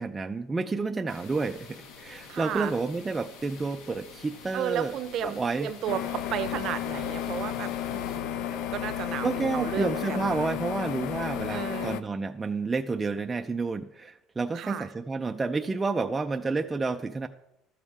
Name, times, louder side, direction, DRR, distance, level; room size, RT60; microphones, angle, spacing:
voice 1, 0.0-4.9 5.2-5.7 9.2-17.3, right 3 dB, 15° right, 5 dB, 0.3 m, -30 dB
sound 1, 1.1-8.2, left 5 dB, 85° left, 1.4 m, -48 dB
voice 2, 2.3-2.7 4.5-10.5 11.5-12.0 14.5-14.9, right 10 dB, 45° right, 12 dB, 0.7 m, -34 dB
sound 2, 5.9-12.0, left 11 dB, 70° left, 0.6 m, -32 dB
12.5 x 7.1 x 4.9 m, 0.87 s
cardioid pair, 160°, 0 cm